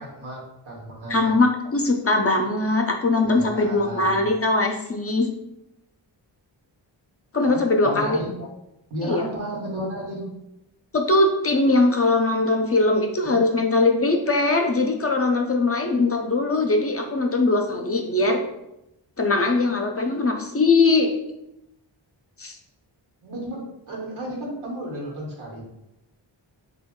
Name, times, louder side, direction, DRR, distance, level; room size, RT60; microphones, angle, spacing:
voice 1, 0.0-1.3 3.2-4.3 7.4-8.3 8.9-10.3 13.2-13.6 23.2-25.7, right 1 dB, 85° right, -2 dB, 1.1 m, -33 dB
voice 2, 1.1-5.3 7.3-8.2 9.0-9.2 10.9-18.4 19.2-21.1 22.4-22.6, left 2 dB, 30° left, 3 dB, 0.4 m, -21 dB
2.9 x 2.3 x 3.6 m, 0.87 s
cardioid pair, 65°, 47 cm